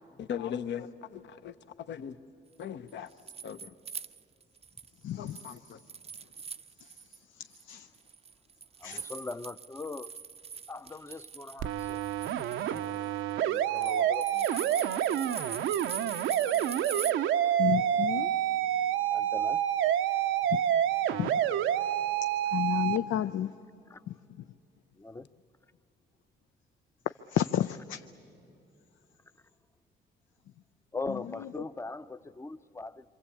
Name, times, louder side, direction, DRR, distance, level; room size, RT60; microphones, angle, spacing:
voice 1, 0.2-2.2 2.6-3.1 3.4-3.7 5.2-5.8, left 8 dB, 65° left, 0.9 m, -39 dB
sound 1, 2.9-4.9 5.3-7.2 7.5-17.1, right 6 dB, 30° right, 0.5 m, -43 dB
voice 2, 5.0-5.4 7.7-7.9 8.8-9.0 17.6-18.3 20.5-20.6 21.2-21.4 22.5-23.5 27.3-28.0 31.1-31.6, left 11 dB, 80° left, 0.6 m, -31 dB
voice 3, 8.8-10.1 10.7-12.0 12.7-12.9 13.4-14.8 19.1-19.6 23.9-24.0 25.0-25.3 30.9-33.0, left 3 dB, 15° left, 0.6 m, -40 dB
sound 2, 11.6-23.0, right 10 dB, 85° right, 0.7 m, -28 dB
26.0 x 25.0 x 8.5 m
cardioid pair, 90°, 20 cm